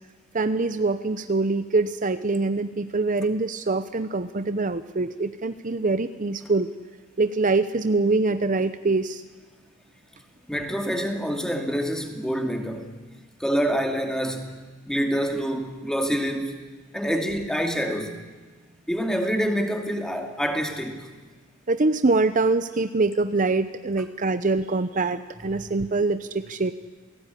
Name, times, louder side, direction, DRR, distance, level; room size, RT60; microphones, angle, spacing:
voice 1, 0.3-6.7 7.2-9.2 21.7-26.7, right 3 dB, 40° right, 0.7 m, -24 dB
voice 2, 10.5-12.9 13.4-14.6 14.9-16.6 16.9-18.2 18.9-21.1 25.5-25.7, equal, 5° left, 2.5 m, -26 dB
28.0 x 18.0 x 9.9 m
head